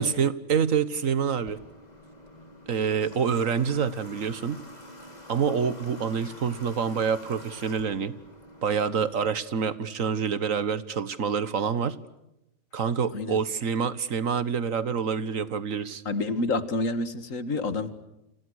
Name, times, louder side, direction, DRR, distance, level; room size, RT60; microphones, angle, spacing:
voice 1, 0.0-1.6 2.7-4.6 5.3-8.2 8.6-12.0 12.7-16.0, right 6 dB, 90° right, 15 dB, 1.7 m, -27 dB
Water / Water tap faucet, 1.3-9.3, left 1 dB, 30° left, 4.7 m, -47 dB
voice 2, 16.1-17.9, left 2 dB, 80° left, 12 dB, 2.3 m, -28 dB
30.0 x 27.0 x 6.4 m, 0.90 s
omnidirectional pair, 1.3 m